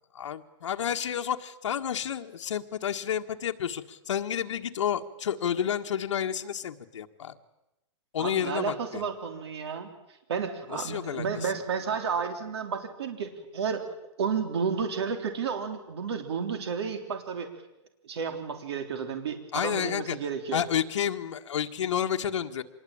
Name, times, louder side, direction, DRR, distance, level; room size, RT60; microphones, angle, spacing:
voice 1, 0.1-7.4 8.1-9.0 10.7-11.5 19.5-20.2 20.5-22.6, left 9 dB, 85° left, 4 dB, 1.7 m, -30 dB
voice 2, 8.2-9.9 10.3-13.8 14.2-17.5 18.0-20.6, right 6 dB, 60° right, 6 dB, 3.4 m, -32 dB
26.0 x 21.0 x 8.9 m, 0.91 s
hypercardioid pair, 180°, 15 cm